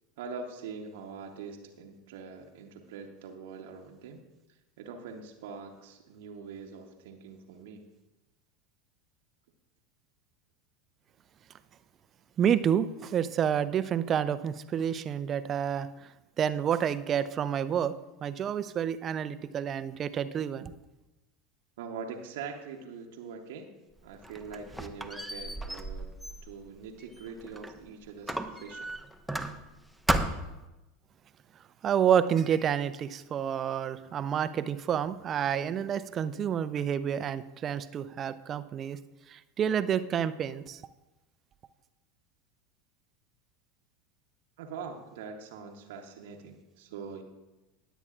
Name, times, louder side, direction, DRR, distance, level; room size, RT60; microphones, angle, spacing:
voice 1, 0.2-4.2 4.5-7.8 21.8-23.7 24.0-26.1 26.4-28.9 44.6-47.2, right 5 dB, 65° right, 2 dB, 1.0 m, -43 dB
voice 2, 12.4-16.1 16.4-17.9 18.2-20.7 31.8-39.0 39.3-40.8, right 8 dB, 35° right, 14 dB, 0.5 m, -29 dB
Squeak, 24.0-27.8 28.3-29.8 30.1-30.6, right 1 dB, ahead, 0.8 m, -34 dB
20.5 x 8.1 x 2.4 m, 1.0 s
figure-of-eight pair, 80°, 0 cm